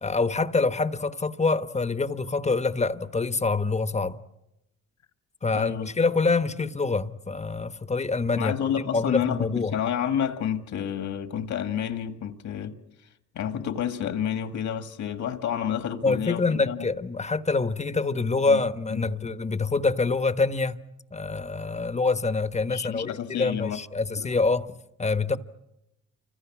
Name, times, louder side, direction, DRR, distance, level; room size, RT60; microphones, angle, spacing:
voice 1, 0.0-4.2 5.4-8.5 8.9-9.8 16.0-20.8 21.1-25.4, left 3 dB, 20° left, 1.2 m, -26 dB
voice 2, 5.5-5.9 8.4-12.8 13.3-16.9 18.5-18.6 18.9-19.1 22.7-23.8 24.1-24.3, left 9 dB, 70° left, 2.1 m, -30 dB
29.0 x 25.5 x 6.2 m
cardioid pair, 90°, 30 cm